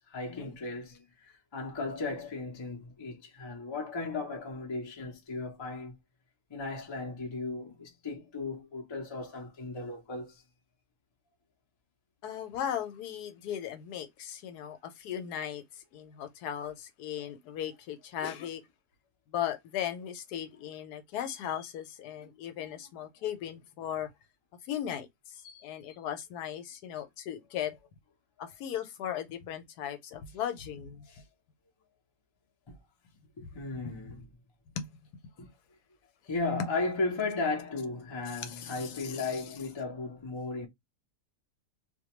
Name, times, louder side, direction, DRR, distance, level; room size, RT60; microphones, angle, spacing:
voice 1, 0.1-6.0 6.5-10.4 31.1-31.2 32.7-32.8 33.4-34.3 35.4-35.5 36.3-40.7, left 3 dB, 45° left, 0.3 m, -36 dB
voice 2, 12.2-18.6 19.3-24.1 24.6-27.8 28.4-31.1 33.4-33.5 33.8-33.9 34.8-34.9 38.3-39.5, left 10 dB, 80° left, 1.1 m, -37 dB
2.5 x 2.2 x 2.9 m
omnidirectional pair, 1.7 m